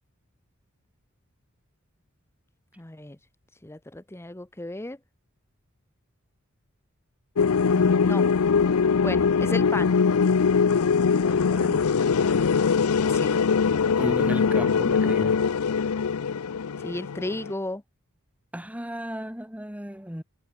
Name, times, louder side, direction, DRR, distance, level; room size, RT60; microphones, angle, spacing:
voice 1, 2.8-3.2 3.6-5.0 7.6-8.2 9.0-10.0 13.1-13.4 16.8-17.8, left 1 dB, 10° left, 0.9 m, -34 dB
sound 1, 7.4-17.5, left 5 dB, 90° left, 0.6 m, -22 dB
voice 2, 11.2-11.9 14.0-15.4 18.5-20.2, equal, 5° right, 2.0 m, -35 dB
head